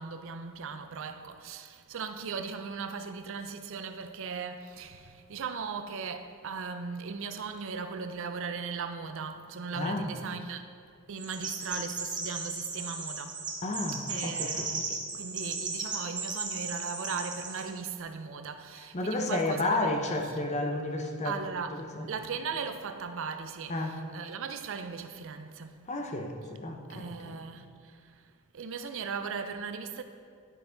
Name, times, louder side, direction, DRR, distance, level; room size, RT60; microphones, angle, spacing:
voice 1, 0.0-10.7 11.1-13.4 14.1-20.4 21.2-25.9 26.9-28.3 28.5-30.0, right 5 dB, 60° right, 0.5 m, -38 dB
voice 2, 9.8-10.1 13.6-14.7 18.9-21.4 22.0-22.1 23.7-24.0 25.9-27.4, left 2 dB, 30° left, 0.7 m, -31 dB
Chirp tweet, 11.2-17.7, right 3 dB, 20° right, 1.0 m, -36 dB
10.0 x 5.9 x 3.9 m
head